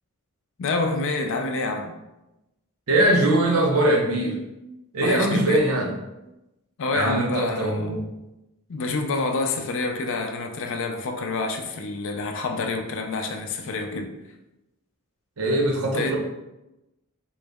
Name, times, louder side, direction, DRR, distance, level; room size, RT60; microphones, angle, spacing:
voice 1, 0.6-1.9 5.0-5.6 6.8-8.0 8.7-14.1 15.8-16.2, left 3 dB, 60° left, 0.4 m, -27 dB
voice 2, 2.9-4.4 4.9-5.9 6.9-8.0 15.4-16.2, right 1 dB, 75° right, 0.7 m, -21 dB
3.8 x 2.0 x 3.4 m
head